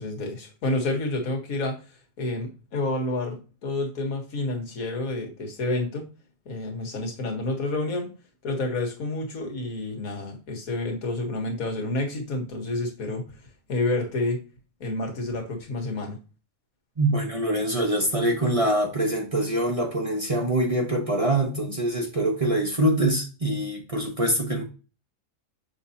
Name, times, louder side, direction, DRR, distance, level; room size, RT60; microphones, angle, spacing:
voice 1, 0.0-6.1 6.5-8.1 8.4-13.4 13.7-14.4 14.8-16.2, left 2 dB, 70° left, 2 dB, 1.9 m, -29 dB
voice 2, 17.0-24.6, right 1 dB, 25° right, 1 dB, 1.1 m, -24 dB
6.8 x 5.3 x 2.8 m, 0.33 s
omnidirectional pair, 1.5 m